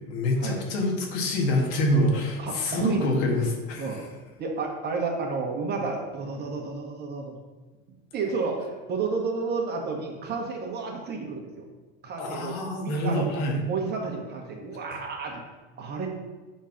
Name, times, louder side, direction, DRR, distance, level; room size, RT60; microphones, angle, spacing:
voice 1, 0.0-4.0 12.2-13.6, left 1 dB, 65° left, 0 dB, 1.8 m, -26 dB
voice 2, 2.1-3.2 3.8-4.0 4.4-7.4 8.1-11.6 12.0-13.3 13.7-15.4 15.8-16.1, right 4 dB, 35° right, 1 dB, 1.5 m, -31 dB
7.1 x 3.9 x 5.8 m, 1.2 s
supercardioid pair, 125°, 29 cm